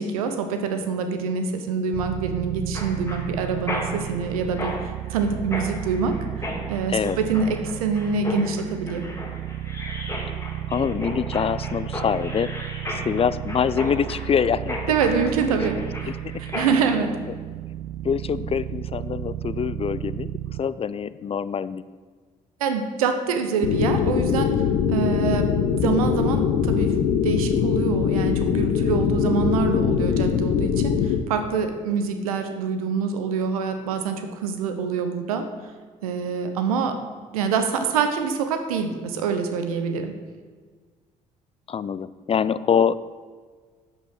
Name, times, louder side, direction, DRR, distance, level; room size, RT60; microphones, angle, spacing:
voice 1, 0.0-9.1 14.9-15.8 16.4-17.1 22.6-24.6 24.9-27.0 27.2-35.5 36.0-37.0 37.3-40.1, right 5 dB, 85° right, 7 dB, 0.9 m, -25 dB
sound 1, 1.9-20.6, right 12 dB, 55° right, 0.4 m, -33 dB
Mechanisms, 2.7-16.9, left 1 dB, 15° left, 2.3 m, -35 dB
voice 2, 10.7-12.5 12.9-14.8 15.5-15.6 18.0-20.3 20.6-21.8 41.7-43.0, left 7 dB, 35° left, 17 dB, 0.5 m, -24 dB
sound 2, 23.6-31.2, left 7 dB, 65° left, 0.8 m, -22 dB
8.1 x 8.1 x 6.1 m, 1.5 s
hypercardioid pair, 50°, 18 cm